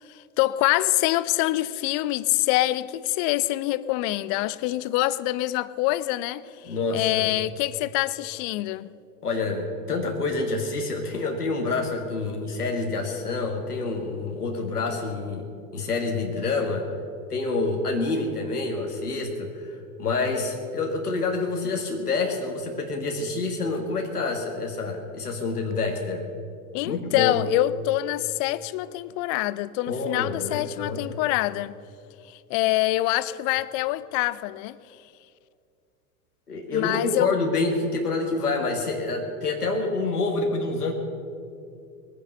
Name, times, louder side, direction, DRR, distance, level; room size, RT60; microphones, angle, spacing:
voice 1, 0.1-8.9 26.7-31.8 32.2-34.8 36.7-37.3, left 17 dB, 40° left, 0.6 m, -25 dB
voice 2, 6.7-7.3 9.2-15.5 15.7-16.9 17.3-26.2 26.8-27.4 29.9-31.0 36.5-40.9, left 3 dB, 85° left, 1.9 m, -27 dB
20.0 x 9.7 x 6.7 m
figure-of-eight pair, 90°, 44 cm